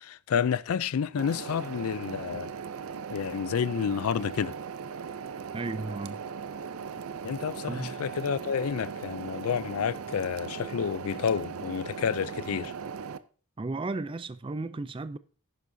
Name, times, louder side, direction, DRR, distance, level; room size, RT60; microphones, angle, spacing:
voice 1, 0.0-2.5 3.1-4.5 7.2-12.7, left 7 dB, 80° left, 0.4 m, -30 dB
sound 1, 1.2-13.2, right 6 dB, 75° right, 0.5 m, -39 dB
voice 2, 5.5-6.2 7.7-8.0 13.6-15.2, right 3 dB, 25° right, 0.4 m, -34 dB
11.0 x 10.0 x 2.7 m
head